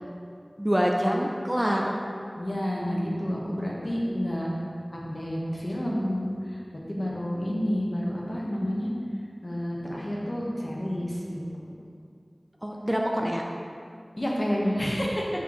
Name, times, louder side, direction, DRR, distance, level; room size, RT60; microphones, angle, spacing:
voice 1, 0.6-2.0 12.6-13.4, equal, 15° right, 0 dB, 0.5 m, -25 dB
voice 2, 2.4-4.5 4.9-6.6 6.9-8.9 9.4-11.4 14.2-15.3, equal, 50° left, -4 dB, 1.1 m, -29 dB
6.1 x 5.7 x 3.2 m, 2.3 s
wide cardioid pair, 45°, 0 cm